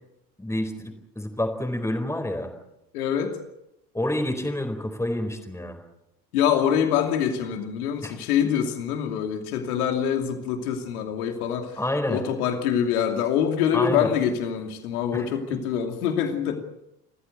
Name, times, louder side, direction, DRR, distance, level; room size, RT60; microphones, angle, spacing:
voice 1, 0.4-2.5 3.9-5.8 8.0-8.1 11.8-12.2 13.7-14.1 15.1-15.3, left 1 dB, 5° left, 5 dB, 4.4 m, -28 dB
voice 2, 2.9-3.4 6.3-11.7 12.1-16.5, left 8 dB, 70° left, 5 dB, 2.8 m, -25 dB
27.5 x 15.0 x 8.1 m, 0.86 s
figure-of-eight pair, 70°, 46 cm